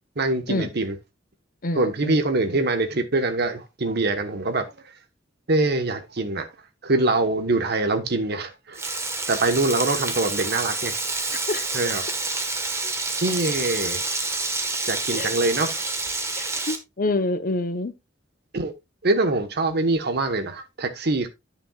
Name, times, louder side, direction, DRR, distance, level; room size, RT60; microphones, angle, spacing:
voice 1, 0.2-1.0 1.7-4.7 5.5-6.5 6.8-8.8 9.3-10.9 11.7-12.0 12.6-14.0 14.9-15.8 18.5-18.7 19.0-21.3, right 2 dB, 60° right, 1.2 m, -24 dB
voice 2, 1.6-2.2 11.5-11.7 15.1-15.3 16.4-17.9, left 2 dB, 50° left, 0.9 m, -27 dB
Frying (food), 8.7-16.8, right 3 dB, 15° right, 1.4 m, -28 dB
10.0 x 8.7 x 2.4 m
head